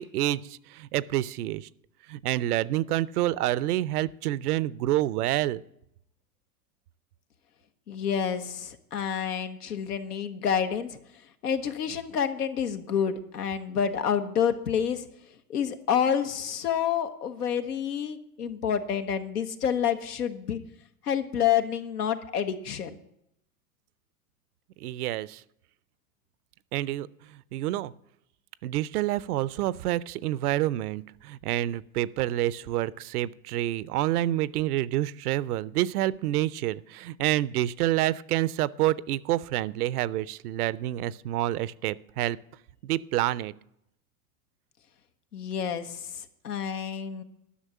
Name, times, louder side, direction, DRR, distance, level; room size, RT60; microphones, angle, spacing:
voice 1, 0.0-1.7 2.1-5.6 24.8-25.4 26.7-27.9 28.6-42.4 42.8-43.5, right 14 dB, 75° right, 19 dB, 0.6 m, -28 dB
voice 2, 7.9-11.0 11.4-15.1 15.5-20.6 21.0-23.0 45.3-46.0 46.4-47.2, left 8 dB, 90° left, 8 dB, 1.3 m, -28 dB
11.5 x 6.3 x 8.3 m, 0.79 s
hypercardioid pair, 105°, 45 cm